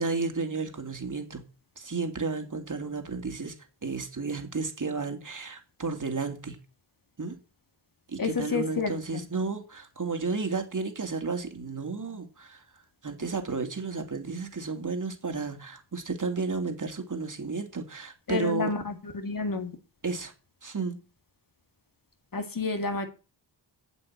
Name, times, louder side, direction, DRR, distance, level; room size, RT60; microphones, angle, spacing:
voice 1, 0.0-1.4 1.8-3.5 3.8-6.6 7.2-7.4 8.1-12.6 13.0-18.7 20.0-20.3 20.6-21.0, right 4 dB, 40° right, 2.2 m, -32 dB
voice 2, 8.2-9.2 18.3-19.7 22.3-23.1, left 4 dB, 45° left, 2.0 m, -30 dB
7.7 x 7.6 x 8.5 m
wide cardioid pair, 85°, 46 cm